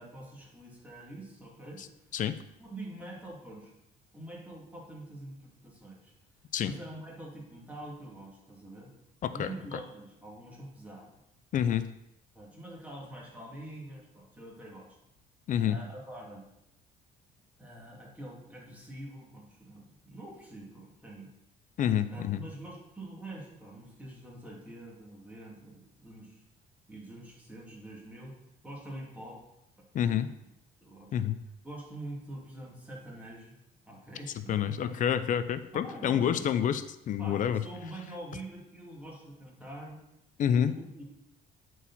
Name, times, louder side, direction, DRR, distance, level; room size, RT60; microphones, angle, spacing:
voice 1, 0.0-1.8 2.6-3.7 4.1-6.1 6.6-8.9 9.3-11.2 12.3-15.0 15.6-16.4 17.6-21.3 22.1-26.4 26.9-28.3 28.6-29.4 29.9-30.3 30.8-31.2 31.6-33.5 33.9-34.7 35.7-36.5 37.2-40.0 40.7-41.1, right 1 dB, 10° right, -3 dB, 2.5 m, -45 dB
voice 2, 11.5-11.9 15.5-15.8 21.8-22.4 29.9-30.3 31.1-31.4 34.5-37.6 40.4-40.7, left 9 dB, 50° left, 12 dB, 0.5 m, -28 dB
8.5 x 4.6 x 4.1 m, 0.84 s
cardioid pair, 110°, 17 cm